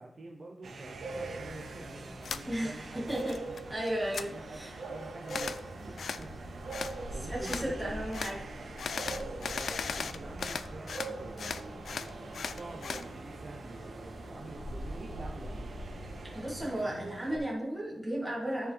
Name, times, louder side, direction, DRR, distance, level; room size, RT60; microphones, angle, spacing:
voice 1, 0.0-3.8 4.3-8.0 9.1-15.9, right 2 dB, 35° right, 0 dB, 0.8 m, -47 dB
sound 1, 0.6-17.4, right 3 dB, 75° right, 1.6 m, -44 dB
sound 2, 0.8-16.7, equal, 15° left, 1.3 m, -46 dB
sound 3, 2.2-2.4 2.8-3.6 3.9-4.3 5.3-5.6 6.0-6.2 6.7-6.9 7.4-7.7 8.1-8.3 8.8-11.1 11.4-13.0, left 5 dB, 60° left, 0.4 m, -37 dB
voice 2, 2.5-3.4 3.7-4.7 7.2-8.4 16.3-18.7, right 1 dB, 5° right, -5 dB, 2.1 m, -34 dB
13.5 x 4.9 x 3.4 m, 0.91 s
wide cardioid pair, 170°, 0 cm